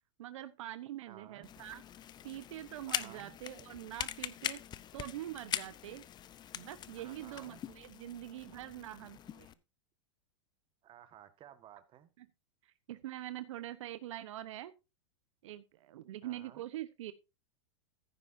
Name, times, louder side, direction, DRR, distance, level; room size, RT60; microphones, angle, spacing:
voice 1, 0.2-1.8 2.2-4.6 4.9-6.0 6.5-9.5 12.2-12.3 12.6-14.7 15.4-17.1, right 13 dB, 75° right, 1.0 m, -44 dB
voice 2, 1.1-1.5 2.9-3.3 7.0-7.6 10.8-12.1 16.2-16.6, right 10 dB, 35° right, 1.6 m, -55 dB
sound 1, 1.4-9.5, left 11 dB, 25° left, 0.7 m, -43 dB
15.0 x 9.8 x 2.7 m
hypercardioid pair, 125°, 16 cm